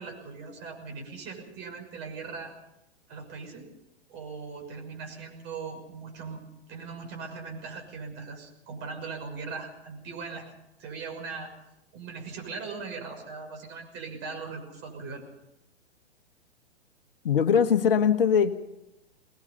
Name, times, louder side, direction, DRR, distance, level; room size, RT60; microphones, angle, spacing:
voice 1, 0.0-2.5 3.1-3.7 4.1-6.4 6.7-10.5 10.8-11.5 11.9-15.2, right 4 dB, 30° right, 2 dB, 6.3 m, -39 dB
voice 2, 17.2-18.6, left 7 dB, 55° left, 8 dB, 1.4 m, -21 dB
24.0 x 20.0 x 5.7 m, 0.87 s
figure-of-eight pair, 110°, 33 cm